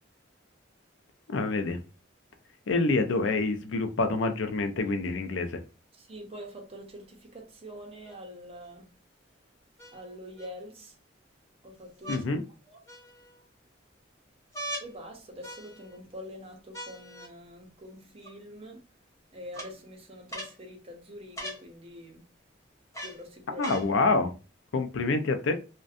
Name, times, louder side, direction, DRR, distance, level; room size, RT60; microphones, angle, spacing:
voice 1, 1.3-1.8 2.7-5.6 12.1-12.4 23.6-24.3 24.7-25.5, left 3 dB, 70° left, 0.4 m, -27 dB
voice 2, 6.0-8.9 9.9-11.0 11.6-12.2 12.7-12.8 14.8-18.9 19.3-22.3 23.0-23.6, equal, 30° right, 0.6 m, -45 dB
sound 1, 8.0-8.1 9.8-10.5 12.0-12.2 12.9-13.4 14.5-14.9 15.4-16.0 16.7-17.3 18.2-18.3 19.5-19.7 20.3-20.6 21.3-21.6 22.9-23.2 23.6-23.9 24.7-24.8, right 1 dB, 15° left, 0.7 m, -40 dB
2.5 x 2.1 x 2.4 m
head